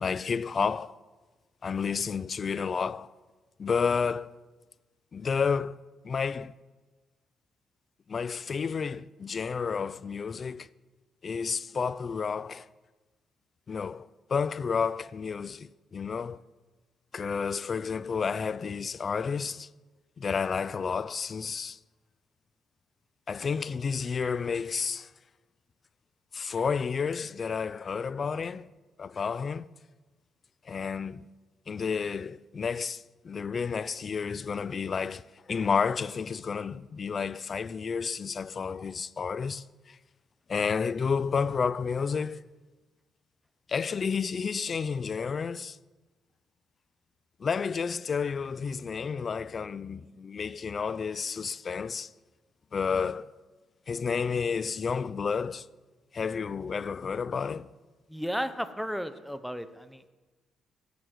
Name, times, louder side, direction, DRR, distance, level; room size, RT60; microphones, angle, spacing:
voice 1, 0.0-0.9 1.6-3.1 3.6-4.3 5.1-5.8 6.0-6.5 8.1-10.7 11.2-12.7 13.7-16.4 17.1-19.7 20.2-21.8 23.3-25.1 26.3-28.7 29.0-29.7 30.7-31.3 31.7-35.2 35.5-40.0 40.5-42.4 43.7-45.8 47.4-52.1 52.7-53.3 53.9-55.7 56.1-57.7, left 6 dB, 40° left, 0.3 m, -31 dB
voice 2, 58.1-60.1, equal, ahead, 0.7 m, -34 dB
8.1 x 8.1 x 7.6 m
cardioid pair, 90°, 0 cm